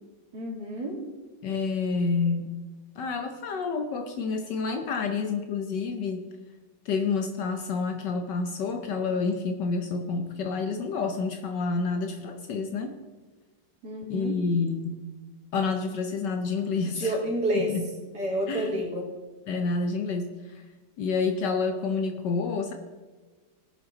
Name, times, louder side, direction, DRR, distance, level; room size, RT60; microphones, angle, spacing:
voice 1, 0.3-1.0 13.8-14.3 17.0-17.7 18.1-19.0, right 1 dB, 65° right, -2 dB, 3.2 m, -29 dB
voice 2, 1.4-2.5 3.0-6.3 6.8-12.9 14.1-15.0 15.5-17.2 17.5-17.9 18.5-18.8 19.5-20.6 21.0-22.7, left 4 dB, 70° left, 6 dB, 1.4 m, -29 dB
18.5 x 7.0 x 3.8 m, 1.3 s
omnidirectional pair, 2.0 m